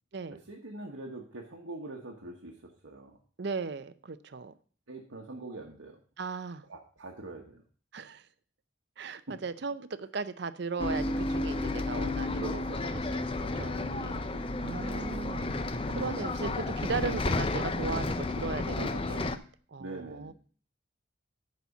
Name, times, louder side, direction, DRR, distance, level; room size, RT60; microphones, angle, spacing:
voice 1, 0.5-2.5 2.8-3.2 4.9-6.0 6.7-7.6 12.3-12.8 14.8-15.1 17.0-17.2 18.8-19.4 19.8-20.3, right 2 dB, 80° right, -1 dB, 1.2 m, -43 dB
voice 2, 3.4-4.5 6.2-6.7 7.9-8.3 9.0-12.7 12.9-15.5 15.9-19.3 19.7-20.3, right 4 dB, 55° right, 13 dB, 0.5 m, -37 dB
Bus, 10.8-19.4, left 2 dB, 25° left, 0.5 m, -32 dB
10.5 x 4.2 x 7.0 m, 0.43 s
head